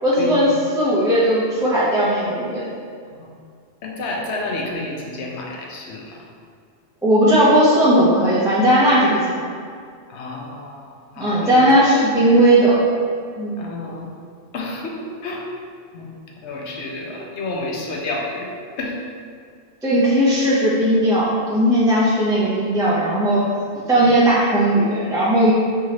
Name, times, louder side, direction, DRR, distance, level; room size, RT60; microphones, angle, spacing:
voice 1, 0.0-2.7 7.0-9.4 11.2-12.8 13.4-13.5 19.8-23.4 23.9-25.5, right 1 dB, 5° right, -8 dB, 0.5 m, -17 dB
voice 2, 3.8-6.0 10.1-10.8 11.2-11.6 13.6-14.1 14.5-15.4 15.9-16.1 16.4-18.5 18.8-19.0, left 2 dB, 80° left, -1 dB, 0.9 m, -29 dB
4.6 x 3.0 x 2.9 m, 2.2 s
omnidirectional pair, 1.2 m